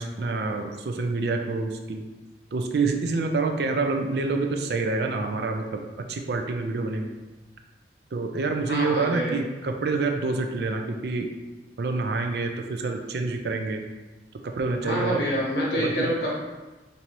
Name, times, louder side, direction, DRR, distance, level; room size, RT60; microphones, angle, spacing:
voice 1, 0.0-2.0 2.5-5.8 6.1-7.1 8.1-11.3 11.8-13.8 14.6-15.2 15.8-16.1, right 3 dB, 60° right, 4 dB, 0.4 m, -27 dB
voice 2, 8.7-9.4 14.8-16.4, equal, 70° left, -4 dB, 1.2 m, -27 dB
4.5 x 2.7 x 2.8 m, 1.2 s
head